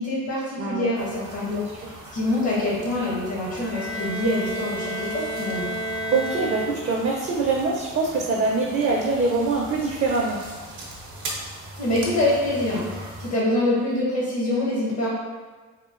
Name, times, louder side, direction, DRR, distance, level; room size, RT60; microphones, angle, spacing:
voice 1, 0.0-1.7 2.1-5.7 11.8-15.1, left 1 dB, 55° left, -6 dB, 0.8 m, -25 dB
sound 1, 0.9-13.3, right 1 dB, 85° right, 0.6 m, -40 dB
voice 2, 1.5-1.9 6.1-10.4, right 3 dB, 40° right, -2 dB, 0.4 m, -24 dB
Bowed string instrument, 3.5-7.2, right 1 dB, 15° left, 0.4 m, -31 dB
2.9 x 2.2 x 2.4 m, 1.4 s
cardioid pair, 90°, 30 cm